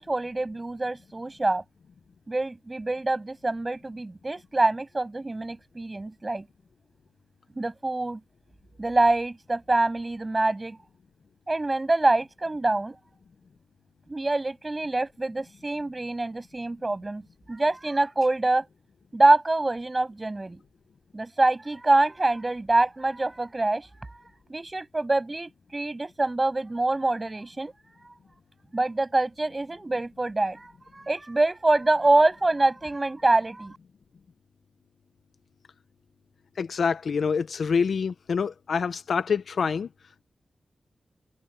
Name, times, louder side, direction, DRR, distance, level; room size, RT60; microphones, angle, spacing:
voice 1, 0.0-1.6 2.3-6.5 7.6-8.2 8.8-10.8 11.5-13.0 14.1-18.7 19.1-20.6 21.1-23.9 24.5-27.7 28.7-33.8, right 2 dB, 25° right, 7.2 m, -25 dB
voice 2, 36.6-39.9, left 5 dB, 75° left, 0.8 m, -26 dB
wide cardioid pair, 80°, 0 cm